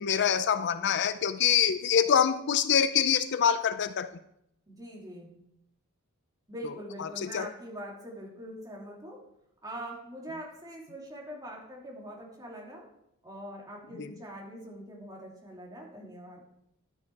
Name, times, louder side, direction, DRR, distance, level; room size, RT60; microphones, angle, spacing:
voice 1, 0.0-4.1 6.6-6.7 7.0-7.5 14.0-14.1, left 8 dB, 55° left, 12 dB, 0.5 m, -25 dB
voice 2, 4.7-5.3 6.5-9.2 9.6-12.8 13.2-16.4, right 1 dB, 20° right, -2 dB, 2.9 m, -43 dB
12.0 x 8.6 x 4.7 m, 0.76 s
head